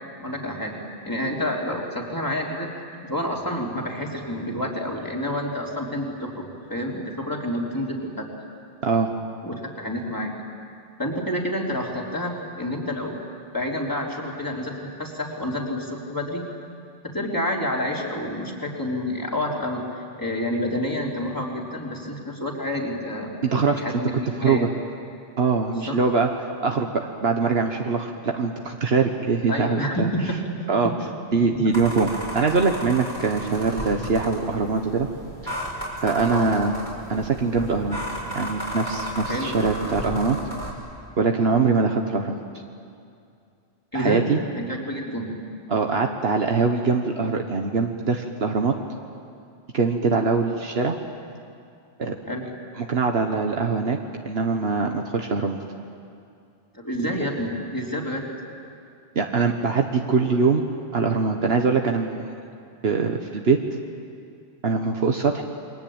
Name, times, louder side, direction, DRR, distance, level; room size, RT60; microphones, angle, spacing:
voice 1, 0.2-0.8 1.1-2.8 3.0-8.3 9.4-10.3 11.0-13.2 13.5-16.4 17.1-23.3 23.7-24.1 24.4-24.7 25.7-26.0 29.5-30.3 30.8-30.9 31.5-31.6 36.3-36.5 39.3-39.7 43.9-44.3 44.6-45.4 52.3-52.5 56.7-58.3 60.2-60.4, left 1 dB, 20° left, -1 dB, 3.8 m, -29 dB
voice 2, 23.4-23.8 24.4-24.7 25.4-26.3 26.6-30.1 30.7-30.9 31.3-35.1 35.4-35.5 36.0-36.7 37.1-38.0 38.3-40.4 41.2-42.4 43.9-44.4 45.7-48.8 49.7-51.0 52.0-52.2 52.8-54.0 54.2-55.6 59.1-60.6 60.9-62.3 62.8-63.6 64.6-65.4, right 4 dB, 70° right, 3 dB, 1.5 m, -22 dB
sound 1, 31.7-40.7, equal, 50° left, 5.8 m, -33 dB
28.5 x 23.5 x 8.8 m, 2.4 s
omnidirectional pair, 1.1 m